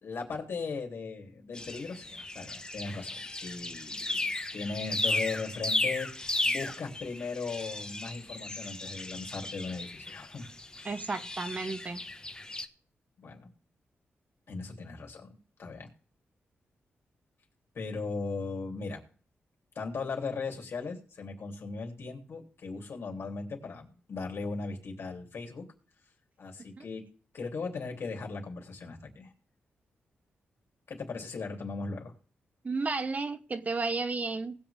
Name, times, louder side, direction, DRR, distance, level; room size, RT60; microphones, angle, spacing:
voice 1, 0.0-6.1 6.4-10.4 10.7-10.9 13.2-13.5 14.5-15.9 17.7-19.0 19.7-25.7 26.4-27.0 27.3-29.3 30.9-32.1, left 4 dB, 65° left, 3.3 m, -38 dB
sound 1, 1.5-12.7, left 2 dB, 20° left, 1.1 m, -35 dB
voice 2, 10.8-12.0 26.8-26.9 32.6-34.5, right 3 dB, 35° right, 1.1 m, -33 dB
19.5 x 7.0 x 3.6 m
cardioid pair, 90°, 4 cm